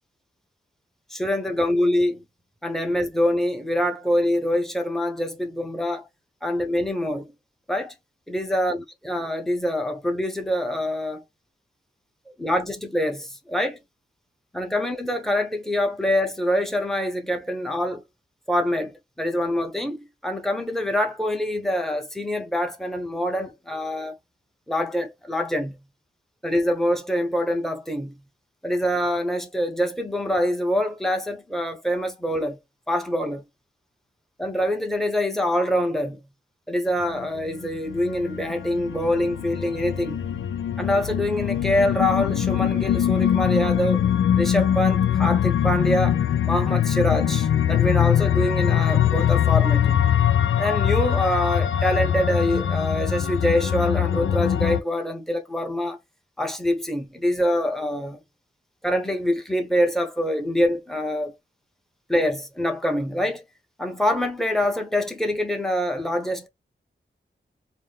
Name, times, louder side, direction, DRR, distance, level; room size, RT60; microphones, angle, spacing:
voice 1, 1.1-2.2 2.6-6.1 6.4-7.3 7.7-7.9 8.3-11.2 12.3-13.8 14.5-18.0 18.5-24.2 24.7-25.8 26.4-28.2 28.6-32.6 32.9-33.4 34.4-36.2 36.7-40.2 40.8-44.0 44.4-46.2 46.4-50.1 50.6-56.0 56.4-58.2 58.8-61.3 62.1-63.4 63.8-66.5, left 1 dB, ahead, 1.0 m, -25 dB
sound 1, 37.2-54.8, left 9 dB, 85° left, 0.4 m, -22 dB
4.1 x 2.2 x 3.5 m
wide cardioid pair, 95°, 20 cm